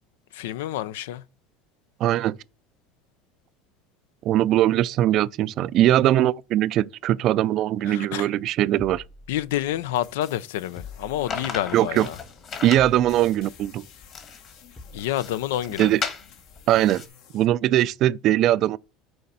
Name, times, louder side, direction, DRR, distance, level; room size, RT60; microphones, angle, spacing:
voice 1, 0.3-1.2 7.9-8.3 9.3-12.2 14.9-15.9, left 13 dB, 90° left, 0.4 m, -28 dB
voice 2, 2.0-2.4 4.2-9.0 11.7-12.1 12.6-13.9 15.8-16.0 16.7-17.0 17.3-18.8, right 13 dB, 50° right, 0.3 m, -21 dB
sound 1, 8.8-9.9 10.8-11.7 12.8-13.5 14.8-15.2, left 4 dB, 20° left, 0.9 m, -44 dB
sound 2, 9.5-17.5, left 8 dB, 65° left, 1.2 m, -52 dB
sound 3, 11.3-17.1, left 6 dB, 40° left, 1.6 m, -36 dB
6.4 x 4.2 x 5.5 m
supercardioid pair, 115°, 0 cm